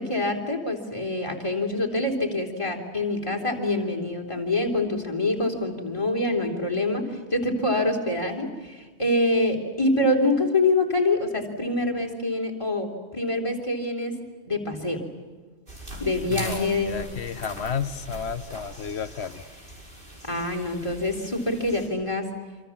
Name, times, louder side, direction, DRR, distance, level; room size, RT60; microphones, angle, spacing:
voice 1, 0.0-14.2 14.5-15.0 16.0-17.0 20.2-22.3, left 2 dB, 25° left, 3.6 m, -25 dB
sound 1, 15.7-21.9, right 1 dB, 50° right, 6.0 m, -41 dB
voice 2, 16.2-19.4, left 7 dB, 75° left, 1.2 m, -32 dB
27.0 x 26.5 x 7.3 m
omnidirectional pair, 1.1 m